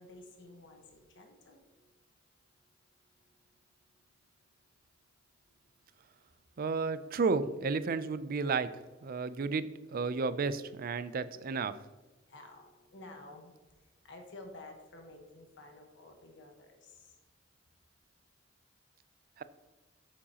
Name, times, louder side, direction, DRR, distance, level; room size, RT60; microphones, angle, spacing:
voice 1, 0.0-1.9 6.5-6.7 12.3-13.5 14.0-17.1, left 2 dB, 65° left, 3 dB, 1.2 m, -52 dB
voice 2, 6.6-8.7 9.0-9.7 9.9-11.7 19.4-19.5, right 4 dB, 50° right, 14 dB, 0.4 m, -32 dB
8.6 x 7.4 x 2.9 m, 1.1 s
head